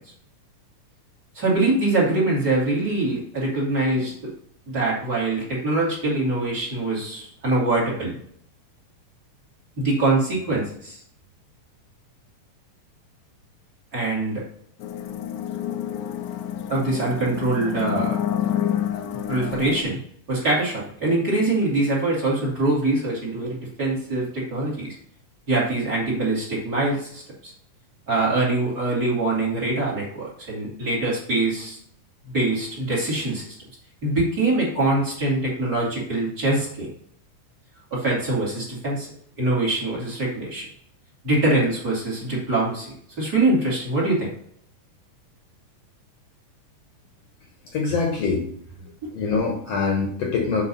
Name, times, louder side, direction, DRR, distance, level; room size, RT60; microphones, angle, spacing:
voice 1, 1.3-4.3 4.7-8.1 9.8-11.0 13.9-14.4 16.7-18.2 19.3-20.0 20.3-25.0 25.5-27.5 28.1-31.8 32.3-33.4 34.0-36.9 37.9-39.1 39.4-40.7 41.2-44.3, right 2 dB, 30° right, -3 dB, 3.0 m, -23 dB
sound 1, 14.8-19.8, left 10 dB, 85° left, 2.2 m, -28 dB
voice 2, 47.7-48.5 48.8-50.6, left 4 dB, 60° left, 1 dB, 2.0 m, -24 dB
8.1 x 3.8 x 5.5 m, 0.64 s
omnidirectional pair, 3.7 m